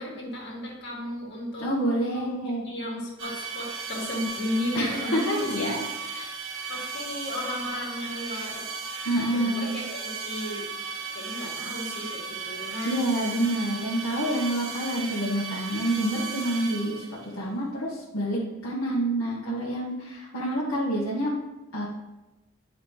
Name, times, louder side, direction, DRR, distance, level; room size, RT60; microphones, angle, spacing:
voice 1, 0.0-1.7 2.1-2.3 2.6-5.7 6.7-8.7 9.3-10.7 11.1-13.1, left 1 dB, 55° left, -2 dB, 2.2 m, -34 dB
voice 2, 1.6-2.6 4.7-5.8 6.1-6.3 9.0-9.7 12.8-21.3 21.7-21.9, right 1 dB, 70° left, -7 dB, 1.5 m, -28 dB
sound 1, 3.2-17.3, right 5 dB, 65° right, 1.3 m, -36 dB
9.8 x 5.0 x 3.2 m, 1.1 s
head